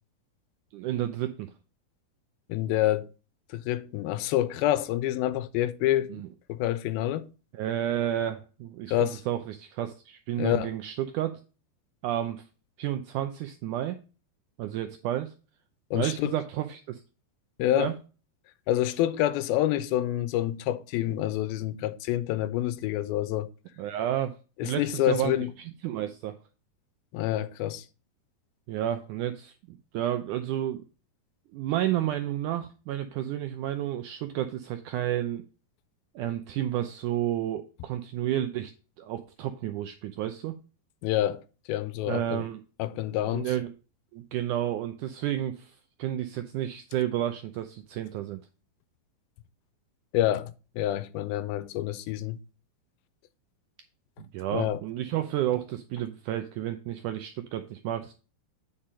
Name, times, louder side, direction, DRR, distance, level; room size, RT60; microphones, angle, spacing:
voice 1, 0.7-1.5 6.1-6.3 7.5-11.4 12.0-12.4 12.8-14.0 14.6-15.3 15.9-17.0 17.7-17.9 23.8-24.4 24.6-26.3 28.7-30.8 31.5-35.4 36.2-38.7 39.0-40.5 42.1-42.6 43.2-43.8 44.1-48.4 54.2-58.1, right 12 dB, 80° right, 1.8 m, -31 dB
voice 2, 2.5-3.1 3.5-6.2 6.5-7.3 8.9-9.2 10.4-10.7 15.9-16.3 17.6-17.9 18.7-23.5 24.6-25.5 27.1-27.8 41.0-41.4 41.7-42.4 42.8-43.5 50.1-52.4 54.5-54.8, left 13 dB, 85° left, 2.5 m, -27 dB
8.9 x 5.0 x 5.4 m
omnidirectional pair, 4.3 m